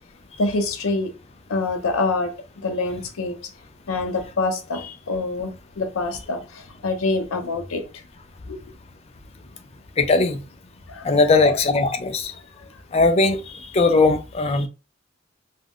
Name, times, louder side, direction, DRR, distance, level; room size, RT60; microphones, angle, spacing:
voice 1, 0.4-1.1 1.5-2.3 2.6-3.4 3.9-5.5 5.8-6.4 6.8-7.8 8.5-8.6 10.9-11.0, left 3 dB, 80° left, 0.6 m, -25 dB
voice 2, 10.0-10.4 11.0-12.3 12.9-13.4 13.7-14.7, left 3 dB, 30° left, 0.3 m, -18 dB
2.3 x 2.1 x 3.4 m
head